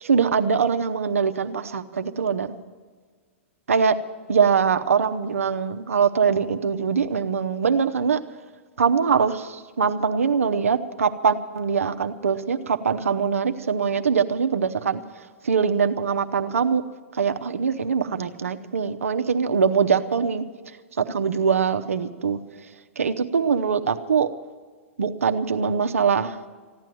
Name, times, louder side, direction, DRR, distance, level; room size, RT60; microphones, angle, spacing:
voice 1, 0.0-2.5 3.7-4.0 4.3-8.2 8.8-15.0 15.4-16.8 17.1-20.4 21.0-22.4 23.0-24.3 25.0-26.4, right 6 dB, 85° right, 7 dB, 0.8 m, -22 dB
15.5 x 10.5 x 7.7 m, 1.5 s
hypercardioid pair, 115°, 7 cm